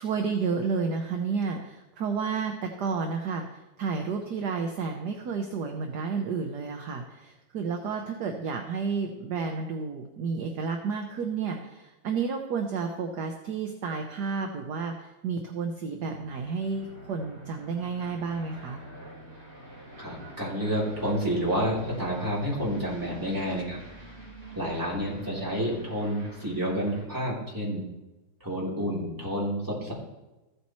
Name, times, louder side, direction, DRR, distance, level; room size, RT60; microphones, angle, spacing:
voice 1, 0.0-18.8, right 5 dB, 60° right, 4 dB, 1.2 m, -31 dB
Aircraft, 16.1-27.1, right 1 dB, 35° right, 2.9 m, -46 dB
voice 2, 20.0-23.8 24.5-27.8 28.4-29.9, equal, 10° right, -7 dB, 3.3 m, -29 dB
14.5 x 8.4 x 3.1 m, 1.0 s
omnidirectional pair, 2.3 m